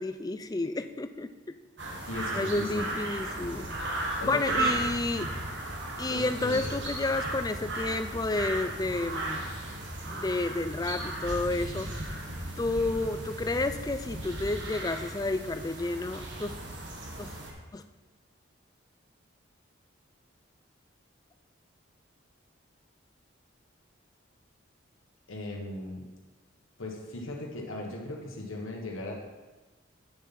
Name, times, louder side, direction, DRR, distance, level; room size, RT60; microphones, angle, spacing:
voice 1, 0.0-1.6 2.3-3.7 4.2-5.3 6.0-9.5 10.1-11.9 12.6-16.5 17.2-17.3 17.7-17.8, left 2 dB, 20° left, 9 dB, 0.3 m, -31 dB
sound 1, 1.8-17.5, right 2 dB, 60° right, 1.4 m, -35 dB
voice 2, 2.0-2.9 4.2-4.6 6.1-6.8 25.3-26.0 26.8-29.1, left 2 dB, 90° left, -1 dB, 1.4 m, -37 dB
8.7 x 6.9 x 4.2 m, 1.2 s
head